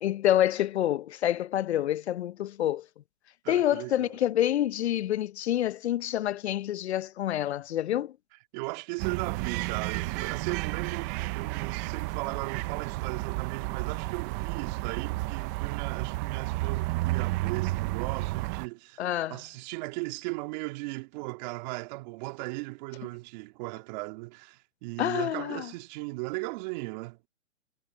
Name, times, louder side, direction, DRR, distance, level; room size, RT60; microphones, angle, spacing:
voice 1, 0.0-2.9 3.5-8.2 19.0-19.4 25.0-25.7, left 12 dB, 55° left, 0.7 m, -27 dB
voice 2, 3.4-4.2 8.5-19.0 19.3-27.2, right 25 dB, 35° right, 1.9 m, -37 dB
sound 1, 9.0-18.7, right 20 dB, 15° right, 0.4 m, -32 dB
hypercardioid pair, 140°, 40 cm